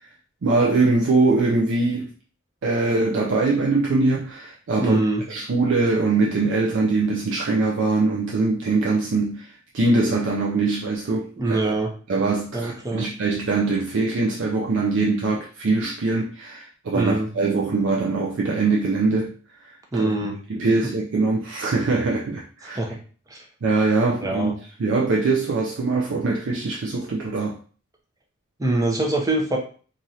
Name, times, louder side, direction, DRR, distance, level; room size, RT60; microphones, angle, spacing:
voice 1, 0.4-2.1 2.6-5.0 5.3-11.8 12.1-19.3 19.6-20.1 20.5-22.8 23.6-24.5 24.8-27.6, right 3 dB, 60° right, -1 dB, 0.4 m, -22 dB
voice 2, 4.8-5.2 11.4-11.9 12.5-13.1 16.9-17.3 19.9-20.4 22.6-23.0 23.3-23.5 24.2-24.5 28.6-29.6, right 2 dB, 15° right, 0 dB, 0.6 m, -24 dB
3.1 x 2.5 x 2.7 m, 0.41 s
head